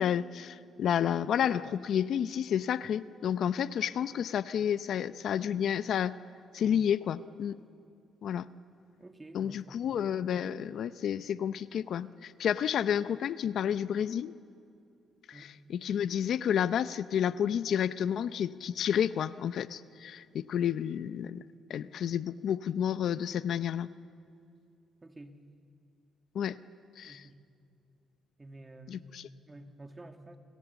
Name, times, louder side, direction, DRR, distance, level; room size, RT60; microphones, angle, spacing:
voice 1, 0.0-6.1 6.5-7.6 8.2-8.5 9.3-14.3 15.3-21.4 21.7-23.9 26.3-26.6 27.0-27.2 28.9-29.3, left 9 dB, 70° left, 14 dB, 0.7 m, -30 dB
voice 2, 9.0-9.9 15.3-15.5 25.0-25.4 27.0-27.4 28.4-29.1 29.4-30.4, right 2 dB, 20° right, 5 dB, 2.3 m, -50 dB
29.5 x 26.0 x 7.2 m, 2.5 s
cardioid pair, 90°, 0 cm